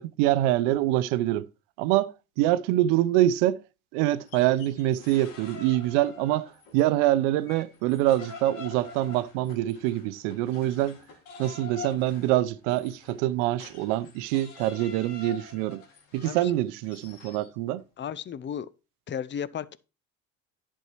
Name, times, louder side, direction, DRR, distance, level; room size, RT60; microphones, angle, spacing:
voice 1, 0.0-1.5 1.8-2.1 2.4-3.6 3.9-11.0 11.4-15.8 16.1-17.8, right 14 dB, 70° right, 0.7 m, -25 dB
sound 1, 4.1-6.9 7.2-17.5, left 4 dB, 70° left, 2.4 m, -46 dB
voice 2, 18.0-18.7 19.1-19.8, left 8 dB, 30° left, 0.6 m, -34 dB
11.0 x 4.4 x 4.6 m
hypercardioid pair, 60°, 39 cm